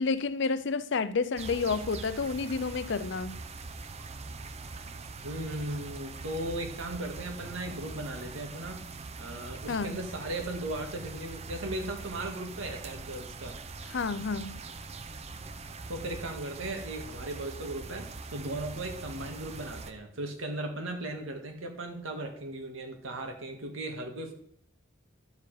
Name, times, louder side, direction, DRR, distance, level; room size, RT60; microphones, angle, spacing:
voice 1, 0.0-3.4 9.7-10.0 13.9-14.6, left 4 dB, 60° left, 0.5 m, -30 dB
sound 1, 1.4-19.9, right 3 dB, 35° right, 0.7 m, -42 dB
voice 2, 5.2-8.8 9.2-13.6 15.9-24.3, right 1 dB, 90° right, 2.0 m, -37 dB
11.5 x 7.0 x 4.9 m
head